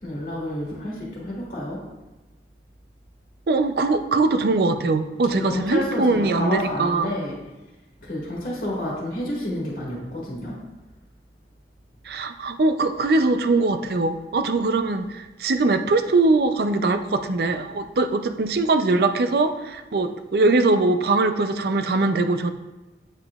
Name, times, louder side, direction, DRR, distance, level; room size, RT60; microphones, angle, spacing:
voice 1, 0.0-1.8 5.3-7.4 8.0-10.6, left 1 dB, 45° left, -5 dB, 1.6 m, -29 dB
voice 2, 3.5-7.1 12.1-22.5, right 3 dB, 60° right, 9 dB, 0.4 m, -21 dB
8.8 x 5.3 x 2.3 m, 1.1 s
head